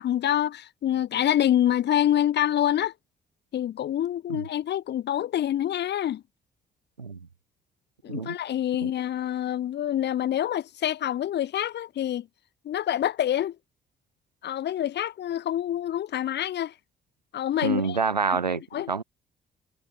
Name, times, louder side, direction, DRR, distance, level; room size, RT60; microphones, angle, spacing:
voice 1, 0.0-2.9 3.5-6.2 8.0-12.3 12.7-13.6 14.4-16.7 17.3-18.0 18.7-18.9, left 11 dB, 55° left, 3.7 m, -26 dB
voice 2, 17.6-18.6 18.9-19.0, right 5 dB, 85° right, 0.9 m, -27 dB
figure-of-eight pair, 40°, 21 cm